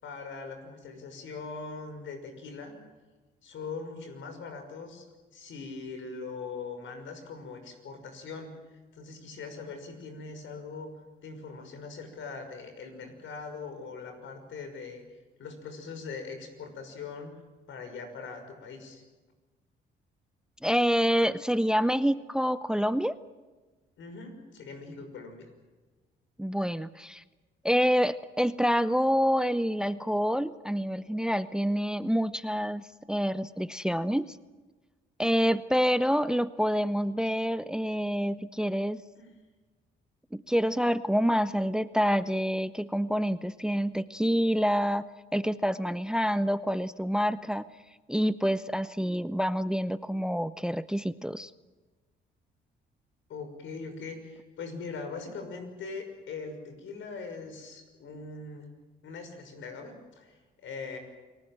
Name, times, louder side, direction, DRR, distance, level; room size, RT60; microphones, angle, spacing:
voice 1, 0.0-2.7 3.4-5.1 5.3-10.9 11.2-15.0 15.4-17.3 17.7-19.0 24.0-25.5 39.2-39.3 53.3-58.7 59.0-61.0, left 4 dB, 75° left, 6 dB, 6.0 m, -41 dB
voice 2, 20.6-23.1 26.4-27.2 27.6-34.4 35.2-39.0 40.3-47.6 48.1-51.5, equal, 5° right, 14 dB, 0.7 m, -27 dB
29.0 x 19.0 x 7.7 m, 1.3 s
cardioid pair, 90°, 20 cm